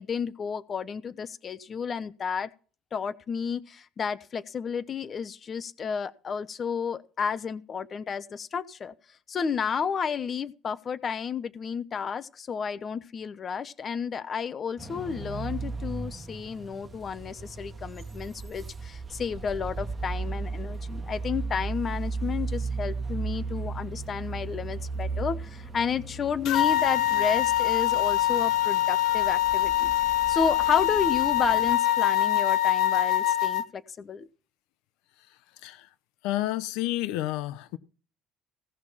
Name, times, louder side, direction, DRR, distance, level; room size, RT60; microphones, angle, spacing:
voice 1, 0.0-2.5 2.9-8.9 9.3-29.9 30.3-34.3, left 6 dB, 35° left, 0.8 m, -31 dB
sound 1, 14.8-31.8, right 4 dB, 20° right, 1.7 m, -36 dB
sound 2, 26.4-33.6, left 13 dB, 65° left, 1.2 m, -24 dB
voice 2, 36.2-37.8, left 15 dB, 85° left, 0.9 m, -30 dB
17.0 x 6.2 x 5.7 m
cardioid pair, 110°, 0 cm